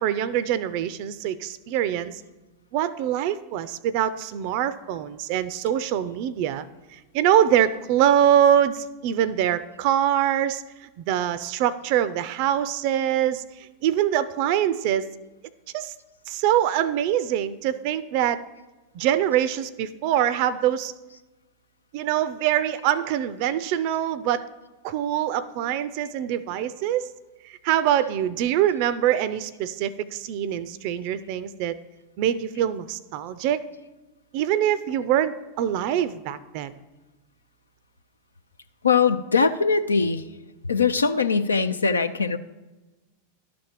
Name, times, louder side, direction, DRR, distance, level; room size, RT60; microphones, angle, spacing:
voice 1, 0.0-2.2 2.7-6.7 6.9-15.1 15.7-15.9 16.3-18.4 18.9-20.9 21.9-24.5 24.8-27.1 27.4-31.8 32.2-33.6 34.3-36.7, right 10 dB, 45° right, 16 dB, 0.4 m, -24 dB
voice 2, 38.8-40.2 40.7-42.4, left 5 dB, 75° left, 11 dB, 0.5 m, -21 dB
11.5 x 4.3 x 7.3 m, 1.1 s
figure-of-eight pair, 90°, 0 cm